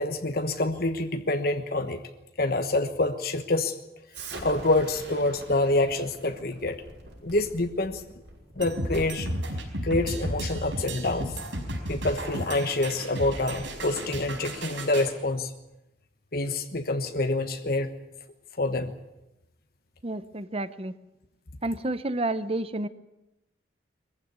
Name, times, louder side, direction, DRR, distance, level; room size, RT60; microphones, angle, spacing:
voice 1, 0.0-2.0 2.4-3.8 4.4-6.8 7.2-8.0 8.6-9.3 9.8-11.4 11.9-15.5 16.3-17.9 18.6-18.9, left 2 dB, 50° left, 7 dB, 1.2 m, -27 dB
Explosion, 4.1-9.2, right 2 dB, 75° right, 5.8 m, -44 dB
sound 1, 8.6-15.1, right 1 dB, 90° right, 5.1 m, -33 dB
voice 2, 20.0-20.9 21.6-22.9, right 2 dB, 30° right, 13 dB, 0.8 m, -30 dB
22.5 x 15.0 x 9.5 m, 0.93 s
head